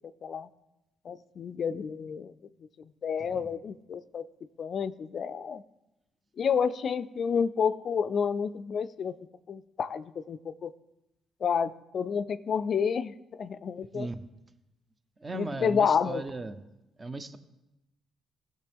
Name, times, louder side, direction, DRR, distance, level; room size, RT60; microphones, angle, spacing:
voice 1, 1.0-2.3 3.0-4.2 4.6-5.6 6.4-9.2 9.5-10.7 11.4-14.1 15.3-16.2, left 6 dB, 55° left, 14 dB, 0.4 m, -30 dB
voice 2, 15.2-16.6 17.0-17.4, right 3 dB, 25° right, 11 dB, 0.7 m, -37 dB
15.5 x 6.5 x 3.5 m, 0.96 s
cardioid pair, 90°, 0 cm